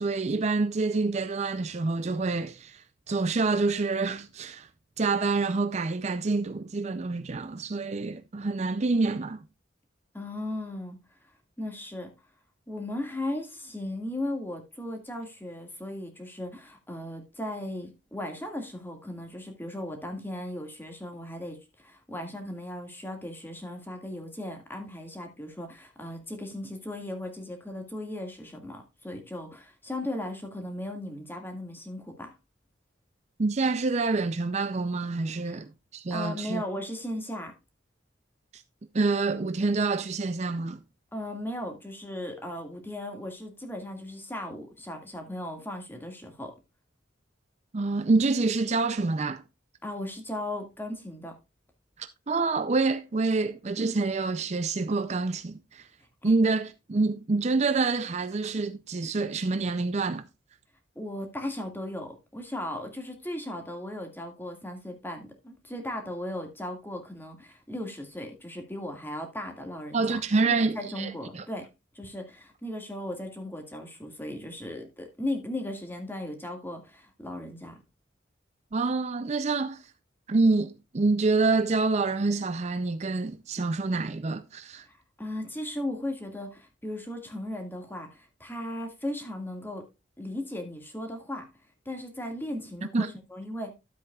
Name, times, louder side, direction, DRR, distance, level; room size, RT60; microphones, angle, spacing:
voice 1, 0.0-4.7 5.0-9.4 33.4-36.6 38.5-38.6 38.9-40.8 47.7-49.4 52.0-55.9 56.2-60.3 69.9-71.4 78.7-79.8 80.3-84.9 92.9-93.1, right 3 dB, 35° right, 0.5 m, -27 dB
voice 2, 10.1-11.0 11.6-12.1 12.7-32.3 35.5-35.6 36.1-37.5 41.1-46.5 49.8-51.3 56.2-56.4 61.0-71.7 71.9-77.8 84.9-89.9 90.2-91.5 91.9-93.7, left 1 dB, 10° left, 1.9 m, -37 dB
12.5 x 8.0 x 2.3 m
head